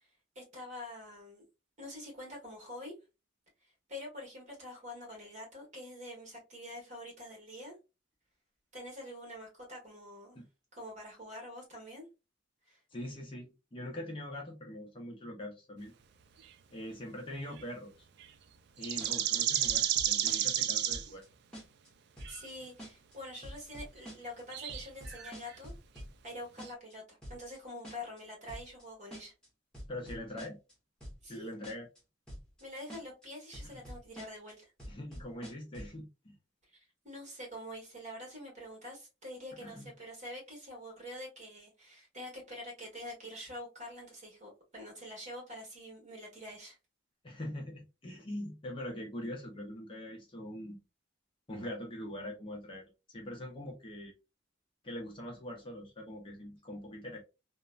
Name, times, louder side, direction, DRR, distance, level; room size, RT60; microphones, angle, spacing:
voice 1, 0.3-1.4 1.8-2.9 3.9-7.7 8.7-10.4 10.7-12.1 12.7-12.8 22.3-25.7 26.2-29.3 31.2-31.5 32.6-34.7 36.7-46.8, left 1 dB, 40° right, -2 dB, 1.5 m, -46 dB
voice 2, 12.9-15.9 16.7-18.1 18.8-21.2 29.9-30.6 31.2-31.9 33.6-33.8 34.9-36.3 39.6-39.9 47.2-50.8 51.5-54.1 54.8-57.2, left 1 dB, 25° left, 0 dB, 0.6 m, -43 dB
sound 1, 17.4-17.6 18.2-18.3 18.8-21.1 22.2-22.4 24.5-25.6 26.0-26.1 26.7-26.8, right 10 dB, 60° right, 0.3 m, -31 dB
sound 2, 19.0-19.4 19.6-20.6 20.9-21.3 21.5-21.9 22.2-22.5 22.8-23.1 23.4-24.4 24.7-26.3 26.6-26.9 27.2-27.6 27.8-28.2 28.5-28.8 29.1-29.5 29.7-30.7 31.0-31.4 31.6-32.0 32.3-32.6 32.9-33.3 33.5-34.5 34.8-36.0, equal, 5° left, 1.0 m, -46 dB
3.0 x 2.1 x 2.3 m, 0.28 s
head